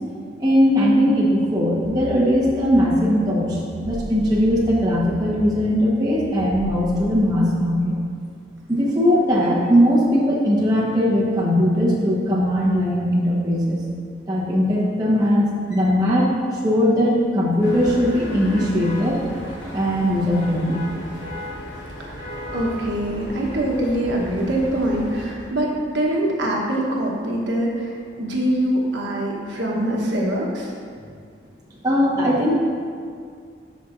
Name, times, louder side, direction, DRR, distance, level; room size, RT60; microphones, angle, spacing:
voice 1, 0.4-7.9 8.7-13.8 14.3-19.2 19.7-20.8 31.8-32.6, equal, 20° right, -5 dB, 1.1 m, -19 dB
sound 1, 1.8-7.2, left 1 dB, 40° left, 0.6 m, -37 dB
sound 2, 17.6-25.3, equal, 70° left, 1.8 m, -35 dB
voice 2, 22.5-30.7, right 1 dB, 75° right, -2 dB, 1.1 m, -24 dB
12.5 x 4.4 x 2.5 m, 2.2 s
head